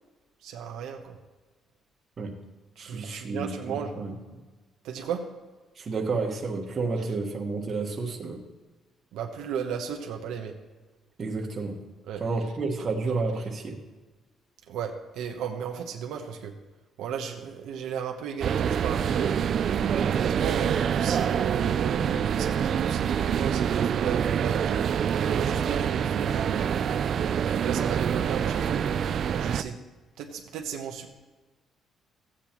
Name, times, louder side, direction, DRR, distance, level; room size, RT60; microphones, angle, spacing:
voice 1, 0.4-1.2 2.8-3.9 4.8-5.2 9.1-10.5 12.1-12.2 14.7-16.5 17.0-19.3 20.0-24.8 25.2-29.0 29.4-29.8 30.2-31.1, right 7 dB, 90° right, 3 dB, 0.9 m, -35 dB
voice 2, 2.8-4.4 5.7-8.4 11.2-11.9 12.2-13.8, right 3 dB, 40° right, 1 dB, 1.3 m, -31 dB
sound 1, 18.4-29.6, right 8 dB, 55° right, 0.3 m, -26 dB
15.0 x 8.6 x 3.0 m, 1.3 s
cardioid pair, 125°, 0 cm